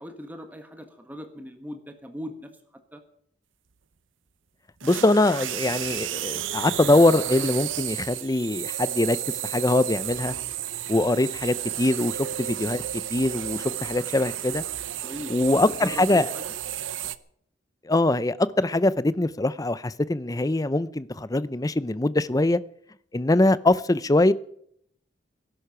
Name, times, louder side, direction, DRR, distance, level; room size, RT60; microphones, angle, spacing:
voice 1, 0.0-2.5 2.9-3.0 15.0-16.5, equal, 10° right, 1.4 m, -39 dB
voice 2, 4.8-10.4 10.9-12.8 13.1-14.6 15.3-16.3 17.8-22.6 23.1-24.3, left 2 dB, 20° left, 0.5 m, -23 dB
sound 1, 4.8-17.2, right 12 dB, 90° right, 0.7 m, -32 dB
19.0 x 11.5 x 5.9 m
head